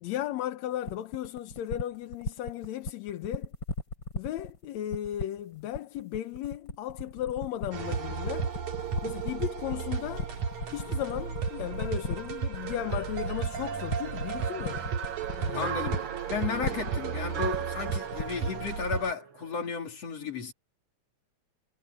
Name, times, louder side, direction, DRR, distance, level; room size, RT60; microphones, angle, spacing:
voice 1, 0.0-3.5 4.1-8.5 9.0-10.3 10.7-14.8 15.4-15.7, left 12 dB, 70° left, 2.1 m, -35 dB
sound 1, 0.8-18.6, left 2 dB, 35° left, 5.3 m, -36 dB
sound 2, 7.7-19.1, right 6 dB, 75° right, 3.7 m, -34 dB
sound 3, 12.6-19.7, right 9 dB, 50° right, 1.8 m, -40 dB
voice 2, 15.5-20.5, left 6 dB, 55° left, 4.5 m, -34 dB
omnidirectional pair, 3.4 m